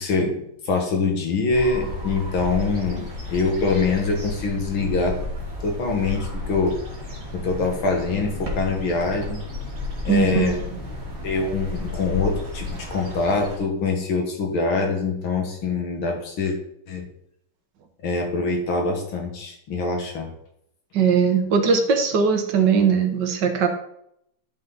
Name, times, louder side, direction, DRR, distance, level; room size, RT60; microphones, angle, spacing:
voice 1, 0.0-5.2 5.6-6.7 7.3-9.4 10.0-10.7 11.2-16.6 16.9-17.1 18.0-20.3, left 4 dB, 90° left, 2 dB, 2.5 m, -24 dB
sound 1, 1.5-13.6, left 2 dB, 35° right, 2.0 m, -33 dB
voice 2, 10.1-10.8 20.9-23.7, right 6 dB, 65° right, 6 dB, 1.6 m, -20 dB
10.5 x 5.7 x 4.0 m, 0.73 s
omnidirectional pair, 2.2 m